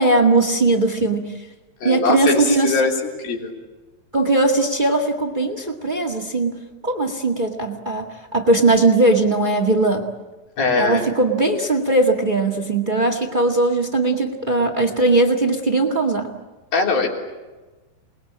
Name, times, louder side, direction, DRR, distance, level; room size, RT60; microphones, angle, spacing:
voice 1, 0.0-1.4 1.8-2.8 4.1-6.5 6.8-10.1 10.8-16.3, right 2 dB, 30° right, 4 dB, 0.9 m, -19 dB
voice 2, 1.8-3.0 3.2-3.5 10.6-11.1 16.7-17.1, left 4 dB, 85° left, 0 dB, 5.6 m, -21 dB
28.5 x 21.0 x 8.7 m, 1.2 s
omnidirectional pair, 4.1 m